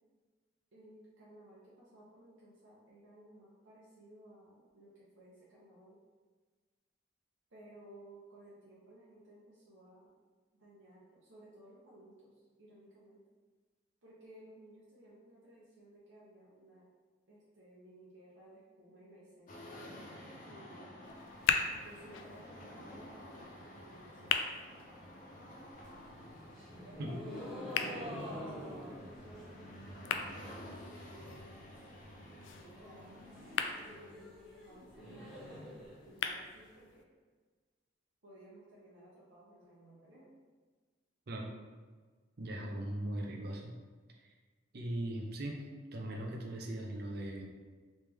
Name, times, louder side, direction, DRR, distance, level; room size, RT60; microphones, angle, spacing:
voice 1, 0.7-6.0 7.5-10.1 10.6-13.2 14.0-16.9 17.3-21.1 21.8-25.1 27.0-31.8 32.3-33.2 33.6-35.7 36.0-37.1 38.2-40.3, right 1 dB, 90° right, -8 dB, 0.8 m, -57 dB
sound 1, 19.5-34.1, left 1 dB, 45° left, 0.6 m, -52 dB
sound 2, 21.0-37.0, left 7 dB, 75° left, 0.3 m, -41 dB
sound 3, 25.7-30.8 31.0-31.6 31.9-32.0 32.2-32.3 32.6-36.6, equal, 5° left, 1.1 m, -47 dB
voice 2, 42.4-43.7 44.2-44.3 44.7-45.6 45.9-47.5, right 1 dB, 55° right, 1 dB, 0.5 m, -39 dB
3.3 x 3.2 x 3.4 m, 1.4 s
head